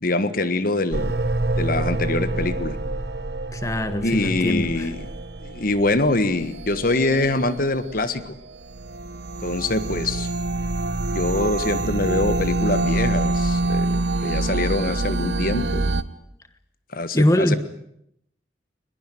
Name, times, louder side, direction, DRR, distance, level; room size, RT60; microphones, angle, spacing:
voice 1, 0.0-1.1 1.6-2.8 4.0-5.1 5.4-8.4 9.4-10.3 11.1-15.9 16.9-17.6, left 2 dB, 55° left, 12 dB, 1.5 m, -24 dB
sound 1, 0.9-16.0, right 2 dB, 75° right, 1.2 m, -26 dB
voice 2, 3.5-4.9 17.1-17.6, left 1 dB, 20° left, 11 dB, 1.3 m, -22 dB
22.0 x 21.5 x 9.2 m, 0.75 s
head